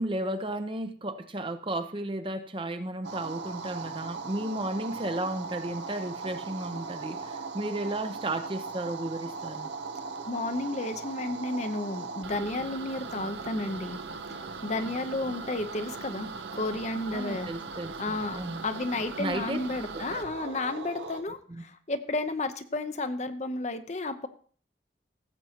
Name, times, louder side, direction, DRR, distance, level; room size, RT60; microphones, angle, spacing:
voice 1, 0.0-9.7 17.1-17.9 18.3-18.6 19.2-19.6 19.9-20.5 21.5-21.6, right 1 dB, 30° right, 0.7 m, -34 dB
sound 1, 3.0-21.2, right 4 dB, 80° right, 0.8 m, -39 dB
voice 2, 10.3-14.0 14.6-17.5 18.0-24.3, left 2 dB, 40° left, 0.7 m, -32 dB
16.0 x 7.7 x 2.9 m
head